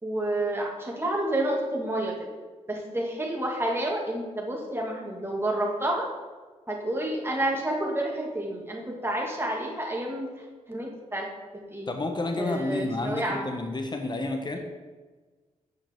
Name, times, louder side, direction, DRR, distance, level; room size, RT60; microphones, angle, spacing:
voice 1, 0.0-2.1 2.7-6.1 6.7-10.3 10.7-11.3 11.7-11.9 12.3-13.5, right 1 dB, 15° right, -1 dB, 2.1 m, -29 dB
voice 2, 11.9-14.6, left 2 dB, 30° left, 4 dB, 1.0 m, -30 dB
7.9 x 5.5 x 3.6 m, 1.3 s
supercardioid pair, 45°, 15 cm